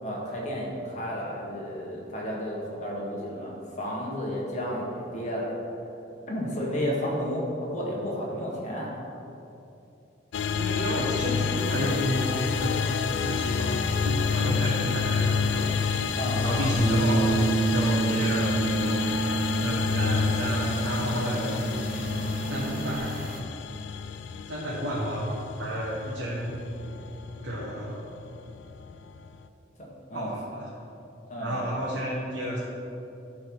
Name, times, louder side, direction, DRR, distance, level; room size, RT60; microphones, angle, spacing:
voice 1, 0.0-5.5 6.3-8.9 16.1-16.7 29.8-30.3 31.3-31.7, equal, 40° left, -4 dB, 1.4 m, -32 dB
sound 1, 10.3-29.5, left 6 dB, 70° left, 0.3 m, -29 dB
voice 2, 10.6-12.8 13.2-15.7 16.4-17.4 17.7-19.0 19.6-21.6 22.5-23.3 24.5-26.6 27.4-28.0 30.1-30.7 31.4-32.6, equal, 85° right, -6 dB, 1.1 m, -31 dB
sound 2, 11.6-23.4, right 2 dB, 50° right, 0.6 m, -41 dB
Bass guitar, 16.8-23.0, right 3 dB, 5° right, 1.4 m, -29 dB
11.0 x 3.6 x 4.7 m, 2.8 s
head